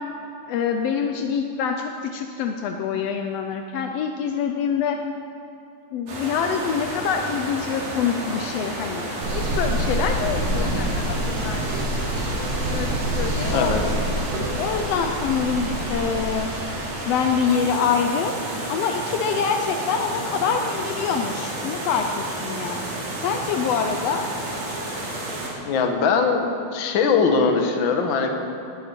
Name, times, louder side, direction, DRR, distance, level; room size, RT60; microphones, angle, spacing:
voice 1, 0.5-5.0 5.9-12.1 12.7-13.7 14.6-16.5 17.1-18.3 18.7-24.3, left 6 dB, 85° left, 5 dB, 1.4 m, -26 dB
sound 1, 6.1-25.5, right 1 dB, 75° right, 4.2 m, -31 dB
sound 2, 9.2-16.3, right 1 dB, 55° right, 2.6 m, -26 dB
voice 2, 10.5-11.0 13.5-13.8 25.6-28.3, left 5 dB, 60° left, 4 dB, 1.3 m, -21 dB
18.5 x 10.0 x 4.5 m, 2.8 s
omnidirectional pair, 3.6 m